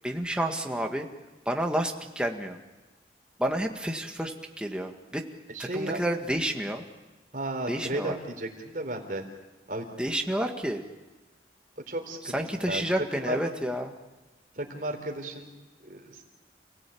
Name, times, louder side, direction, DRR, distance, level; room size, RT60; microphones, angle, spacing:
voice 1, 0.0-1.1 1.5-2.6 3.4-5.2 5.6-6.8 7.7-8.2 10.0-10.8 12.3-13.9, right 1 dB, 5° right, 3 dB, 1.8 m, -30 dB
voice 2, 5.5-6.0 7.3-9.2 9.7-9.9 11.9-12.8 13.2-13.4 14.6-15.5 15.8-16.2, right 1 dB, 50° right, 3 dB, 4.1 m, -34 dB
29.0 x 17.5 x 8.6 m, 1.2 s
head